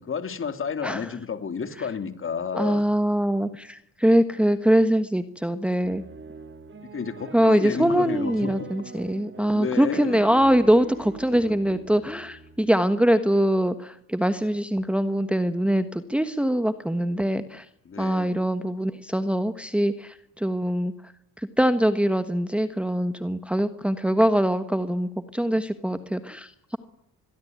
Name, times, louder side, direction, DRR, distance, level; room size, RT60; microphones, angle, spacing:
voice 1, 0.0-2.8 6.8-8.7 9.5-10.3 17.8-18.5, left 6 dB, 35° left, 9 dB, 3.3 m, -31 dB
voice 2, 2.5-6.0 7.3-17.7 18.0-20.9 21.4-26.8, equal, 5° right, 10 dB, 1.3 m, -23 dB
sound 1, 5.8-12.8, right 4 dB, 35° right, 3.8 m, -43 dB
28.0 x 22.0 x 9.5 m, 0.75 s
cardioid pair, 115°, 34 cm